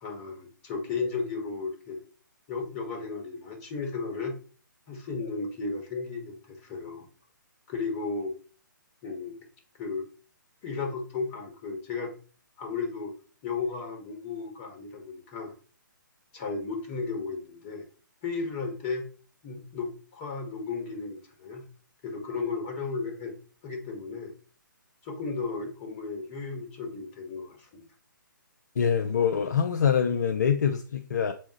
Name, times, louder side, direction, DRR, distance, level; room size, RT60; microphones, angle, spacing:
voice 1, 0.0-2.0 2.5-4.3 4.9-7.1 7.7-8.3 9.0-9.4 9.8-10.1 10.6-12.1 12.6-13.1 13.4-15.5 16.3-17.9 18.2-19.1 19.4-21.6 22.0-23.4 23.6-24.3 25.0-27.8, left 4 dB, 25° left, 1.7 m, -34 dB
voice 2, 28.8-31.3, left 7 dB, 55° left, 0.6 m, -25 dB
7.1 x 4.4 x 3.1 m
figure-of-eight pair, 135°, 11 cm